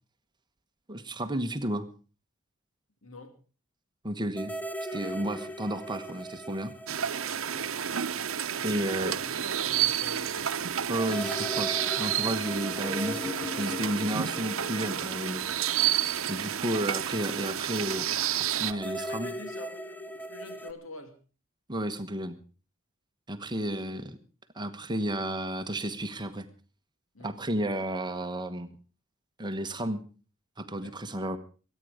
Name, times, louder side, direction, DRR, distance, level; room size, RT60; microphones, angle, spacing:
voice 1, 0.9-1.9 4.0-4.5 4.8-6.7 8.6-9.4 10.9-15.4 16.3-18.1 18.3-19.3 21.7-22.4 23.3-24.2 24.5-26.5 27.2-28.7 29.4-30.0 30.6-31.4, right 1 dB, 20° right, 9 dB, 1.1 m, -32 dB
voice 2, 3.0-3.4 7.5-7.8 8.6-8.9 9.2-10.7 13.5-13.7 18.7-21.1 27.1-27.4 30.7-31.0, left 2 dB, 70° left, 7 dB, 2.3 m, -46 dB
sound 1, 4.4-8.1 8.4-8.5 11.0-16.4 18.7-20.7, equal, 10° left, 0.8 m, -39 dB
sound 2, 6.9-18.7, right 10 dB, 80° right, 0.8 m, -30 dB
24.0 x 9.3 x 5.0 m, 0.37 s
head